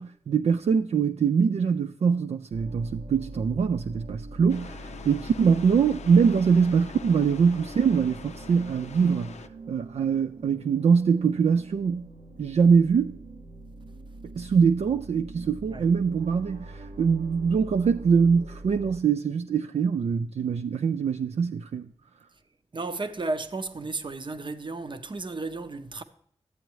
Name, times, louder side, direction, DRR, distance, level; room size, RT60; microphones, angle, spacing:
voice 1, 0.0-12.1 12.4-13.2 14.4-21.9, right 6 dB, 65° right, 0.4 m, -23 dB
sound 1, 2.5-19.0, right 2 dB, 80° right, 1.1 m, -44 dB
sound 2, 4.5-9.5, left 6 dB, 75° left, 0.4 m, -44 dB
voice 2, 22.7-26.0, right 3 dB, 45° right, 0.7 m, -33 dB
12.0 x 7.9 x 3.1 m
cardioid pair, 60°, 12 cm